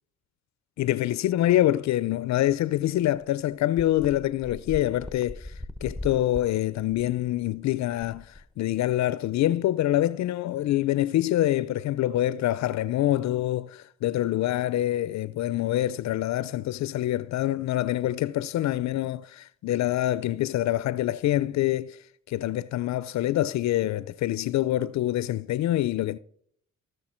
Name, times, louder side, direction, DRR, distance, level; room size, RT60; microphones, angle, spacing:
voice 1, 0.8-5.5 5.8-22.0 22.3-26.2, left 14 dB, 65° left, 0.5 m, -26 dB
sound 1, 2.8-2.9 3.1-3.2 3.8-9.0, left 2 dB, ahead, 0.8 m, -40 dB
15.5 x 6.6 x 4.3 m
cardioid pair, 90°, 30 cm